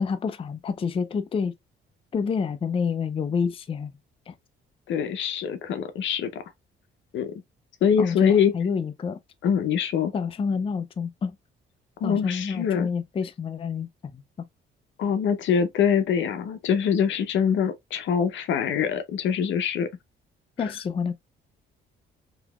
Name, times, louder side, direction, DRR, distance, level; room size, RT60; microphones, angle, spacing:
voice 1, 0.0-1.5 2.1-3.9 4.3-4.4 8.0-9.2 10.1-11.4 12.0-14.2 20.6-21.1, left 5 dB, 30° left, 0.4 m, -28 dB
voice 2, 4.9-6.4 7.1-7.3 7.8-8.5 9.4-10.1 12.0-12.9 15.0-19.9 20.6-20.7, left 7 dB, 70° left, 0.7 m, -24 dB
3.9 x 2.8 x 2.3 m
cardioid pair, 90°, 20 cm